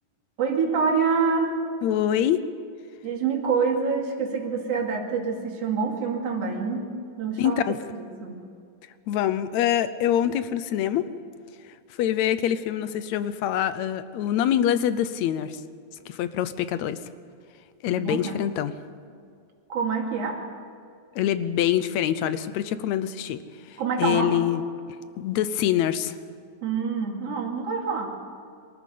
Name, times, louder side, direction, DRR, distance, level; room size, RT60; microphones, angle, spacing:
voice 1, 0.4-1.6 3.0-6.9 7.2-7.6 7.9-8.4 18.0-18.4 19.7-20.4 23.8-24.4 26.6-28.1, right 5 dB, 50° right, 1 dB, 3.2 m, -26 dB
voice 2, 1.8-2.4 7.4-7.8 9.1-11.1 12.0-15.6 16.1-17.0 17.8-18.7 21.2-23.4 23.7-24.6 25.2-26.2, left 10 dB, 70° left, 13 dB, 1.9 m, -25 dB
23.5 x 13.5 x 8.4 m, 2.3 s
omnidirectional pair, 3.6 m